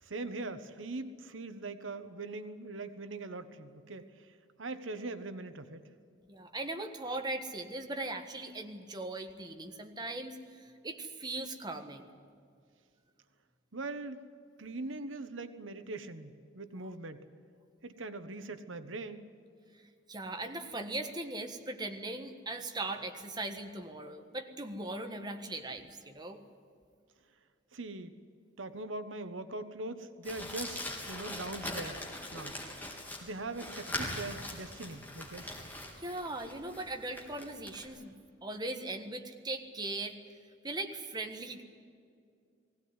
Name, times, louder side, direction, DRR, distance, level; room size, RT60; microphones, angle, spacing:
voice 1, 0.0-5.8 13.7-14.2 14.6-17.3 17.8-19.3 27.7-28.1 28.6-32.0 32.3-32.9 33.2-35.6, right 2 dB, 85° right, 10 dB, 1.2 m, -41 dB
voice 2, 6.3-12.0 20.1-26.4 36.0-40.2 40.6-41.6, right 2 dB, 20° right, 5 dB, 1.5 m, -39 dB
Crumpling crinkling, 30.2-37.8, left 1 dB, 10° left, 3.8 m, -41 dB
20.5 x 17.5 x 9.6 m, 2.3 s
head